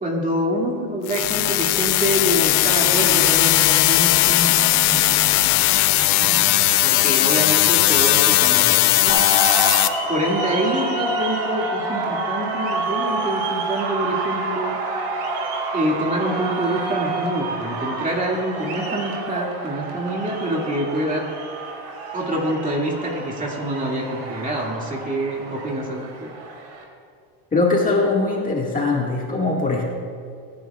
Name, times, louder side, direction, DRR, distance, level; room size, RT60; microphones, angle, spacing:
voice 1, 0.0-5.6 5.9-9.2 10.1-14.8 15.7-21.3 22.1-26.3, right 1 dB, 20° right, -1 dB, 2.4 m, -26 dB
sound 1, 1.1-9.9, left 17 dB, 80° left, 0.7 m, -18 dB
sound 2, 9.1-26.8, right 2 dB, 65° right, 3.3 m, -28 dB
voice 2, 27.5-29.8, left 3 dB, 20° left, -2 dB, 1.9 m, -21 dB
23.5 x 10.5 x 2.4 m, 2.3 s
supercardioid pair, 115°, 44 cm